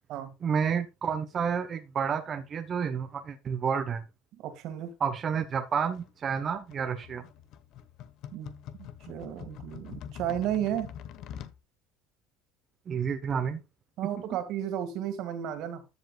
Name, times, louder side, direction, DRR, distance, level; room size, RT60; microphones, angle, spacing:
voice 1, 0.4-4.0 5.0-7.3 12.9-13.6, right 7 dB, 35° right, 1.2 m, -30 dB
voice 2, 4.4-4.9 8.3-10.9 14.0-15.9, right 10 dB, 65° right, 2.2 m, -33 dB
sound 1, 5.9-11.6, left 9 dB, 60° left, 1.3 m, -45 dB
13.0 x 7.6 x 2.4 m
supercardioid pair, 100°, 0 cm